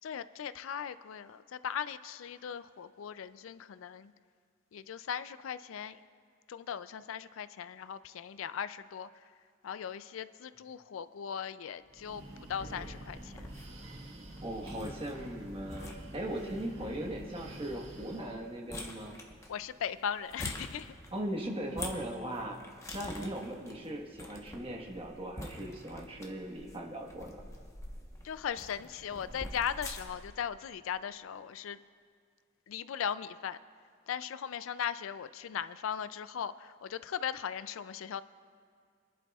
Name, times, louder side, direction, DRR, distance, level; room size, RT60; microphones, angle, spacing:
voice 1, 0.0-4.1 4.7-6.0 6.5-9.1 9.6-13.5 19.5-20.9 28.2-31.8 32.7-33.6 34.1-38.2, left 8 dB, 75° left, 14 dB, 0.4 m, -38 dB
Breathing, 11.8-18.5, right 1 dB, 80° right, 1.5 m, -47 dB
sound 1, 13.2-30.3, left 1 dB, 15° left, 1.1 m, -47 dB
voice 2, 14.4-19.2 21.1-22.6 22.9-27.4, right 1 dB, 30° right, 1 dB, 1.3 m, -39 dB
27.0 x 11.0 x 2.4 m, 2.2 s
head